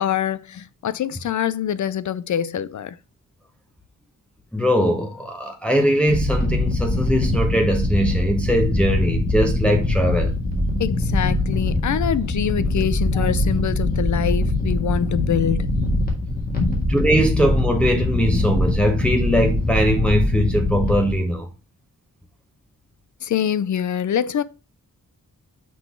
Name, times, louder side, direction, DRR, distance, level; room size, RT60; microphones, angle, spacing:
voice 1, 0.0-3.0 10.8-15.7 16.5-16.7 23.2-24.4, left 9 dB, 65° left, 0.4 m, -24 dB
voice 2, 4.5-10.3 13.1-13.3 16.9-21.5, equal, 5° left, 0.8 m, -21 dB
sound 1, 6.1-21.1, left 1 dB, 30° left, 1.7 m, -22 dB
6.0 x 3.9 x 4.4 m
wide cardioid pair, 150°, 32 cm